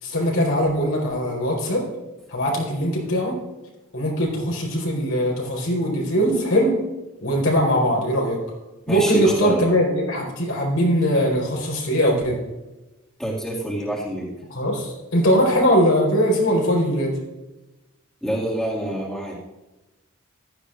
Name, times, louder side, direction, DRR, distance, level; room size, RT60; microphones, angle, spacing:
voice 1, 0.0-1.9 2.3-3.4 3.9-6.8 7.2-8.4 8.9-12.4 14.5-17.2, equal, 85° left, -2 dB, 4.1 m, -21 dB
voice 2, 8.9-9.7 13.2-14.3 18.2-19.4, right 1 dB, ahead, -5 dB, 2.1 m, -26 dB
15.0 x 11.5 x 2.5 m, 1.1 s
head